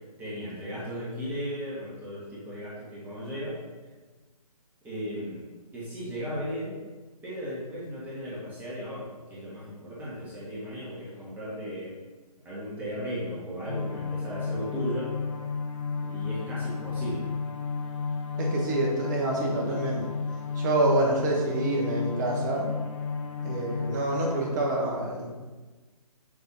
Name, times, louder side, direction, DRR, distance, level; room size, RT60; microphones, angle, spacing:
voice 1, 0.2-3.5 4.8-5.5 5.7-6.8 7.2-11.9 12.4-15.2 16.0-17.3, equal, 10° right, -8 dB, 1.5 m, -36 dB
sound 1, 13.6-24.5, left 5 dB, 50° left, 1.3 m, -32 dB
voice 2, 18.4-20.1 20.5-22.7 23.4-25.3, right 2 dB, 30° right, -1 dB, 1.5 m, -27 dB
7.2 x 3.4 x 5.4 m, 1.3 s
figure-of-eight pair, 145°, 20 cm